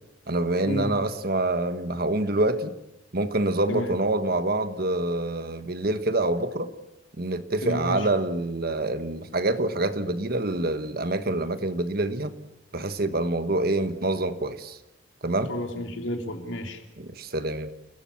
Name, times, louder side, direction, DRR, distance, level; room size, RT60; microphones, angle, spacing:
voice 1, 0.3-2.7 3.1-6.7 7.2-12.3 12.7-14.8 15.2-15.5 17.0-17.7, right 2 dB, 55° right, 1.4 m, -26 dB
voice 2, 7.6-8.1 15.5-16.8, equal, 80° left, 3.5 m, -31 dB
29.5 x 17.0 x 7.3 m
head